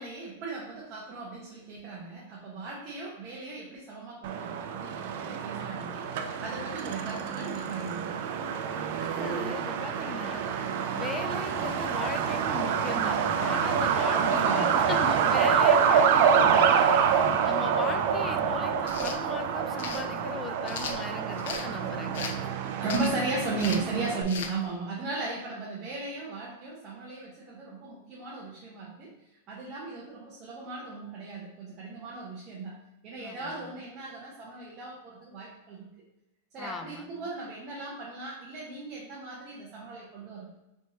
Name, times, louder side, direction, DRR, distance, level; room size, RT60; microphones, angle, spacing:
voice 1, 0.0-8.2 14.2-14.9 22.2-22.3 22.8-29.2 29.5-32.8 33.0-35.9 36.5-40.6, right 3 dB, 30° right, -5 dB, 0.9 m, -36 dB
Truck, 4.2-24.2, right 7 dB, 55° right, 0.4 m, -27 dB
voice 2, 9.0-22.3 33.2-33.8 36.6-37.3, left 5 dB, 15° left, 8 dB, 0.3 m, -39 dB
sound 1, 18.8-19.2 19.8-20.0 20.7-21.7 22.1-22.5 22.9-23.2 23.6-23.9 24.3-24.5, left 7 dB, 70° left, 0.5 m, -37 dB
4.3 x 3.4 x 2.8 m, 0.95 s
supercardioid pair, 155°, 0 cm